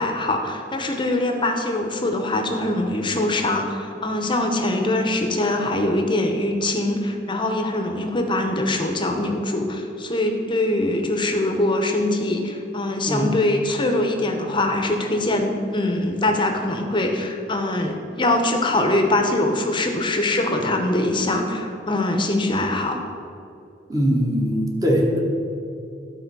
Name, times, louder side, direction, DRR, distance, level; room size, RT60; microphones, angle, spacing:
voice 1, 0.0-23.0, left 1 dB, 25° left, 4 dB, 0.9 m, -23 dB
voice 2, 23.9-25.2, equal, 20° right, -2 dB, 1.4 m, -21 dB
12.5 x 4.3 x 6.1 m, 2.6 s
head